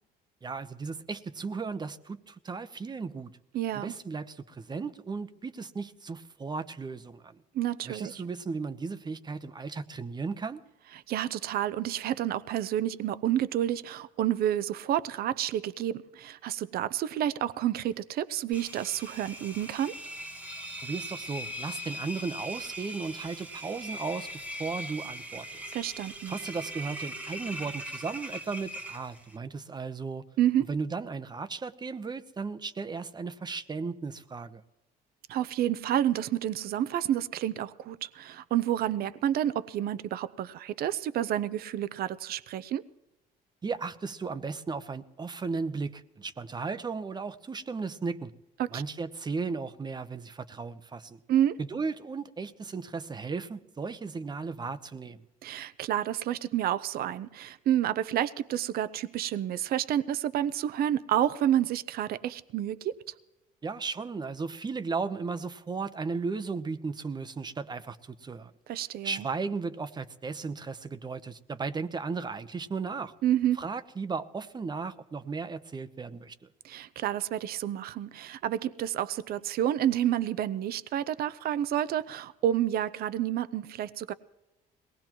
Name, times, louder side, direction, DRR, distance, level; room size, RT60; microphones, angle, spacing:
voice 1, 0.4-3.3 3.7-7.4 7.8-10.6 20.8-25.6 26.3-30.2 30.7-34.6 43.6-48.3 48.7-51.2 51.6-55.2 63.6-68.5 69.0-73.1 73.6-76.4, right 4 dB, 25° right, 0.9 m, -35 dB
voice 2, 3.5-3.9 7.5-8.1 11.1-19.9 25.7-26.4 30.4-30.7 35.3-42.8 48.6-48.8 51.3-51.6 55.4-63.0 68.7-69.2 73.2-73.6 76.6-84.1, right 11 dB, 65° right, 0.7 m, -29 dB
Engine, 18.5-29.4, equal, 10° right, 1.2 m, -40 dB
22.5 x 18.5 x 3.0 m
cardioid pair, 110°, 17 cm